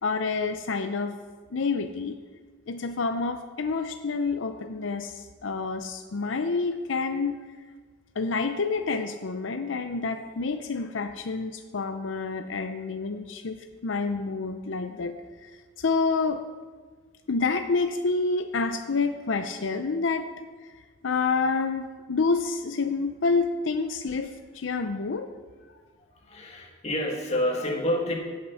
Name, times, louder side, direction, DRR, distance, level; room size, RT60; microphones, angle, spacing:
voice 1, 0.0-1.1 1.5-2.2 2.7-7.4 8.2-15.1 15.4-15.5 15.8-16.4 17.3-20.3 21.0-25.3, left 4 dB, 80° left, 7 dB, 0.6 m, -28 dB
voice 2, 26.2-28.1, left 1 dB, 35° left, 0 dB, 2.1 m, -28 dB
16.0 x 6.6 x 5.7 m, 1.5 s
head